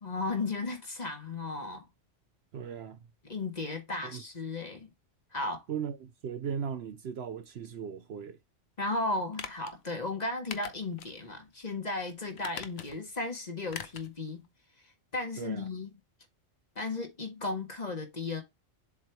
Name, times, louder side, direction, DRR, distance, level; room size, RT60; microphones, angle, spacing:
voice 1, 0.0-1.9 3.2-4.9 5.3-5.6 8.8-14.4 15.1-15.9 16.7-18.4, left 3 dB, 35° left, 1.6 m, -35 dB
voice 2, 2.5-3.0 4.0-4.2 5.7-8.4 15.4-15.7, right 7 dB, 65° right, 0.8 m, -37 dB
sound 1, 9.3-9.7 10.5-11.2 11.5-11.6 12.4-13.1 13.7-14.1 14.4-14.5, left 7 dB, 65° left, 1.0 m, -42 dB
7.3 x 3.2 x 4.5 m
omnidirectional pair, 1.3 m